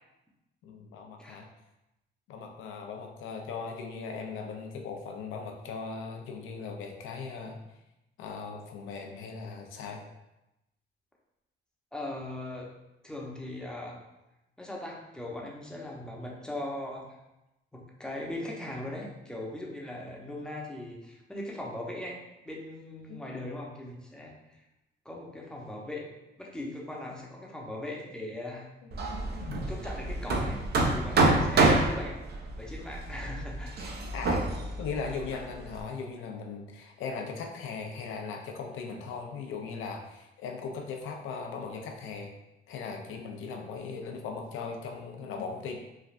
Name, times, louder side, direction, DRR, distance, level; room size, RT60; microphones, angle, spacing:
voice 1, 0.6-1.5 2.3-7.6 8.2-10.0 23.1-23.2 28.8-28.9 29.4-29.8 31.3-31.8 34.1-34.5 34.8-42.3 42.7-45.8, left 5 dB, 85° left, 3 dB, 0.5 m, -38 dB
voice 2, 11.9-12.7 13.0-14.0 14.6-17.2 17.7-22.2 22.4-24.6 25.0-26.1 26.4-28.7 29.7-30.6 30.9-32.1 32.6-33.8, left 1 dB, 5° left, -2 dB, 0.6 m, -39 dB
Hammer, 28.9-35.8, right 2 dB, 55° right, 0.5 m, -28 dB
3.2 x 2.3 x 2.4 m, 0.93 s
cardioid pair, 90°, 20 cm